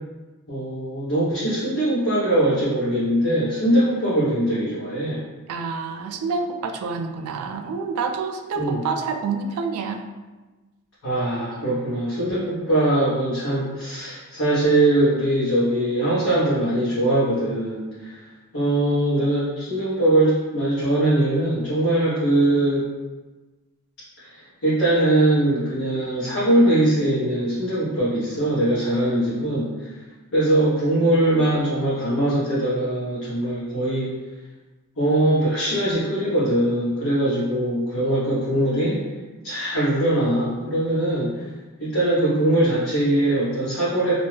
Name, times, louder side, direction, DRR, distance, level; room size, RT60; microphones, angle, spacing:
voice 1, 0.5-5.2 8.6-8.8 11.0-18.2 18.5-22.8 24.3-29.7 30.3-34.1 35.0-39.0 39.4-41.4 41.8-44.1, right 1 dB, 65° left, -12 dB, 1.0 m, -21 dB
voice 2, 5.5-10.0, right 4 dB, 80° right, 10 dB, 0.3 m, -28 dB
2.5 x 2.2 x 3.2 m, 1.2 s
head